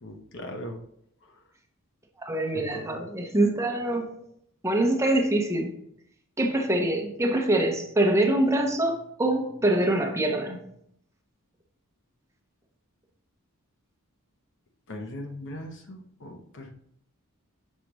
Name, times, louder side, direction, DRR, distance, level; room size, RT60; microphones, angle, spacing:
voice 1, 0.0-0.8 2.5-3.0 14.9-16.7, left 1 dB, 55° left, 3 dB, 0.8 m, -39 dB
voice 2, 2.2-4.1 4.6-5.7 6.4-10.6, right 1 dB, 15° right, 1 dB, 0.8 m, -24 dB
6.3 x 5.0 x 3.0 m, 0.71 s
head